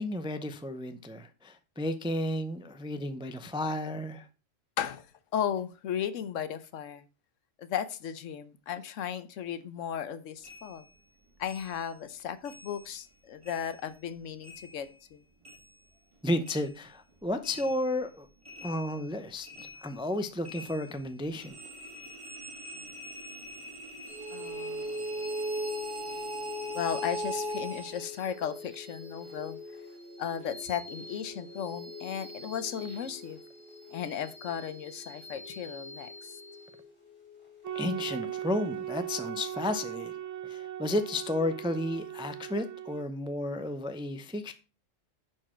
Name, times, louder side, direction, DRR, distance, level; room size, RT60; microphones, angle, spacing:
voice 1, 0.0-4.3 16.2-18.3 18.6-21.6 37.7-40.1 40.4-44.5, left 1 dB, 10° right, 0.3 m, -32 dB
voice 2, 5.3-7.0 7.6-10.9 11.4-15.2 24.3-25.1 26.7-29.6 30.2-33.4 33.9-36.4, left 8 dB, 75° left, 1.1 m, -35 dB
sound 1, 10.4-13.2 13.4-16.2 16.4-28.2, equal, 25° right, 1.8 m, -48 dB
sound 2, 24.1-38.8, equal, 20° left, 4.6 m, -40 dB
sound 3, 37.6-43.0, right 11 dB, 70° right, 1.3 m, -38 dB
10.5 x 4.7 x 4.4 m
omnidirectional pair, 1.3 m